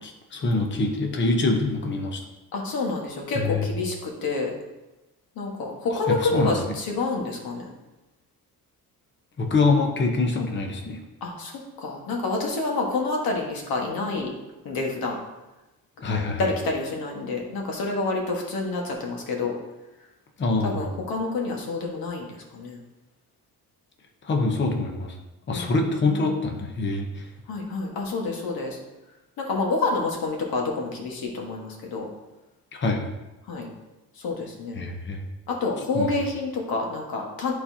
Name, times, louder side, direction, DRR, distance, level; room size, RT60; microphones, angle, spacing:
voice 1, 0.0-2.2 3.3-3.7 5.9-6.6 9.4-11.0 16.0-16.5 20.4-20.9 24.2-25.2 25.5-27.3 32.7-33.1 34.7-35.2 35.9-36.1, left 3 dB, 30° left, 2 dB, 0.8 m, -25 dB
voice 2, 2.5-4.5 5.4-7.6 11.2-14.3 14.6-15.2 16.4-19.5 20.6-22.3 22.5-22.8 25.5-26.2 27.5-28.8 29.4-32.1 33.5-33.7 34.2-34.8 35.5-37.5, left 3 dB, 85° left, 0 dB, 1.5 m, -28 dB
11.0 x 4.2 x 2.8 m, 1.0 s
cardioid pair, 155°, 35 cm